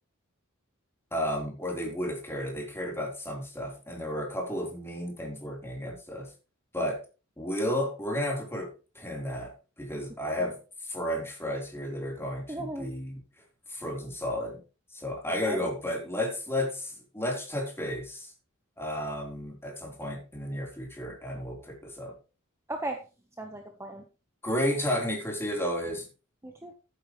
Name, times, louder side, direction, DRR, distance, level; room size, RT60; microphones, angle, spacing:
voice 1, 1.1-6.3 6.7-7.0 7.4-9.5 9.8-13.2 13.7-14.6 14.9-18.3 18.8-22.1 24.4-26.1, left 1 dB, 10° left, 0 dB, 3.9 m, -32 dB
voice 2, 12.5-12.9 15.5-15.7 22.7-23.0 23.4-24.0 26.4-26.7, right 2 dB, 15° right, 4 dB, 1.2 m, -36 dB
14.5 x 9.1 x 3.2 m, 0.33 s
head